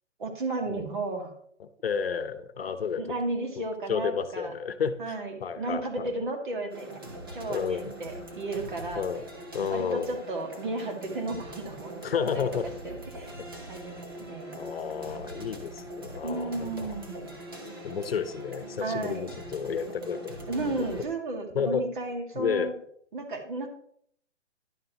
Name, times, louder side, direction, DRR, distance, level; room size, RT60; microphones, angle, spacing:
voice 1, 0.2-1.3 2.6-4.5 5.0-7.0 7.3-9.0 9.7-12.0 12.3-12.5 12.8-13.3 13.7-14.6 16.2-17.3 18.8-19.3 20.5-22.7 23.1-23.7, right 2 dB, 45° right, 3 dB, 2.1 m, -34 dB
voice 2, 1.6-3.0 3.9-6.1 7.5-7.9 9.0-9.2 9.5-10.1 12.0-12.7 13.4-13.5 14.6-16.9 17.8-20.4 20.6-20.9 21.5-21.8 22.3-22.7, left 6 dB, 55° left, 11 dB, 1.0 m, -31 dB
sound 1, 6.7-21.0, right 1 dB, 20° right, 0.7 m, -42 dB
11.0 x 9.3 x 3.0 m, 0.65 s
hypercardioid pair, 175°, 36 cm